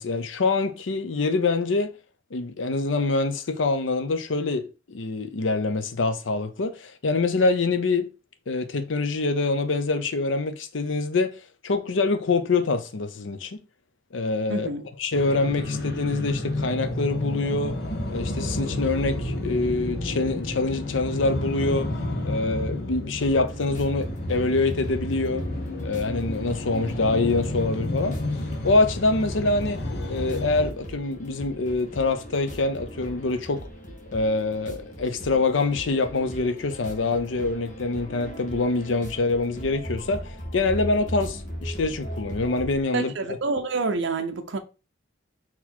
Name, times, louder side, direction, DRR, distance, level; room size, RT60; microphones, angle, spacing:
voice 1, 0.0-1.9 2.3-8.1 8.5-11.3 11.6-13.6 14.1-14.7 15.0-17.8 18.1-21.9 22.2-25.4 25.8-28.2 28.6-29.8 30.1-33.6 34.1-43.1, left 3 dB, 80° left, 0.6 m, -25 dB
voice 2, 14.5-14.9 42.9-44.6, right 3 dB, 65° right, 0.6 m, -27 dB
sound 1, 15.1-30.7, left 1 dB, 60° left, 0.9 m, -31 dB
sound 2, 23.1-42.8, equal, 40° left, 1.2 m, -39 dB
4.2 x 2.9 x 4.3 m
head